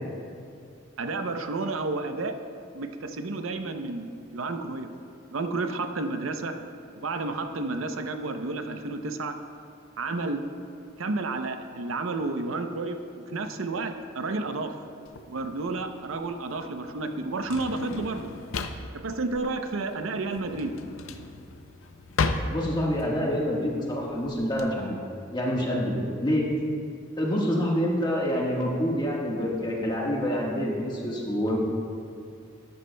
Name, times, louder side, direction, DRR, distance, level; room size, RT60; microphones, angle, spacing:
voice 1, 1.0-2.4 2.7-4.9 5.3-6.6 6.9-9.4 10.0-10.4 11.0-14.7 15.3-18.3 18.9-20.7, right 3 dB, 90° right, 7 dB, 0.6 m, -31 dB
Drawer open or close, 15.1-24.7, left 3 dB, 85° left, 0.6 m, -34 dB
voice 2, 22.5-25.0 25.3-26.5 27.2-31.6, equal, 20° left, -3 dB, 1.4 m, -27 dB
13.0 x 11.5 x 2.2 m, 2.4 s
head